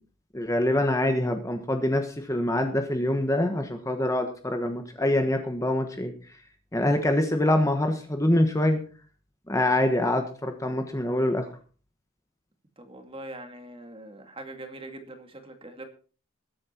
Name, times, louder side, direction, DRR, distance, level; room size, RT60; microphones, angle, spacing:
voice 1, 0.3-6.1 6.7-8.8 9.5-11.5, left 1 dB, 15° left, 1.3 m, -25 dB
voice 2, 12.8-15.8, right 1 dB, 25° right, 2.2 m, -42 dB
20.5 x 8.7 x 4.5 m
head